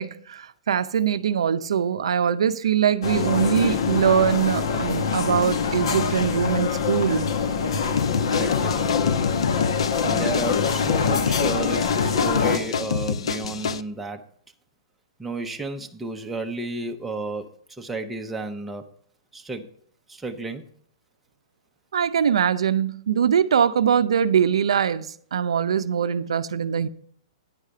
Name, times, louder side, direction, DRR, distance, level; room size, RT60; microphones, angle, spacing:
voice 1, 0.0-7.3 21.9-26.9, right 8 dB, 85° right, 0.5 m, -22 dB
sound 1, 3.0-12.6, left 6 dB, 70° left, 1.0 m, -24 dB
sound 2, 8.0-13.8, left 6 dB, 85° left, 0.5 m, -28 dB
voice 2, 8.3-8.7 10.0-14.2 15.2-18.8 19.3-19.7 20.1-20.6, right 3 dB, 5° right, 0.7 m, -32 dB
9.7 x 4.9 x 6.7 m
hypercardioid pair, 155°, 3 cm